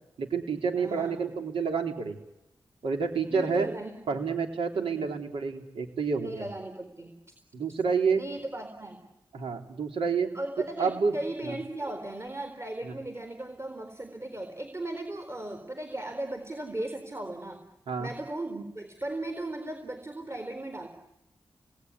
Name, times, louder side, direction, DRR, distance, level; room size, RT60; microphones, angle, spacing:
voice 1, 0.2-2.2 2.8-3.7 4.1-6.5 7.5-8.3 9.3-10.3 10.8-11.1 11.4-11.6 12.9-13.0 17.9-18.1, right 5 dB, 90° right, 4 dB, 3.6 m, -29 dB
voice 2, 0.8-1.3 3.3-4.2 4.7-5.1 6.2-7.2 8.2-9.1 10.3-17.6 18.0-20.9, right 1 dB, 30° right, 6 dB, 4.1 m, -37 dB
28.0 x 19.5 x 9.7 m, 0.93 s
cardioid pair, 55°, 9 cm